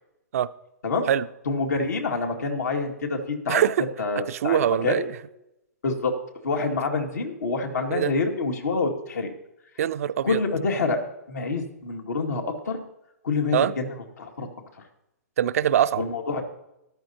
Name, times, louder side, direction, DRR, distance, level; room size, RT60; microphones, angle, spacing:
voice 1, 1.5-3.6 4.0-5.1 5.8-6.1 6.4-9.3 10.2-11.0 11.3-12.8 13.2-13.9 14.2-14.5 16.0-16.4, left 4 dB, 80° left, 2 dB, 2.1 m, -27 dB
voice 2, 3.5-3.9 4.2-5.2 7.9-8.1 9.8-10.4 13.5-13.7 15.4-16.0, right 10 dB, 60° right, 13 dB, 0.5 m, -23 dB
13.5 x 11.0 x 2.8 m, 0.86 s
hypercardioid pair, 135°, 9 cm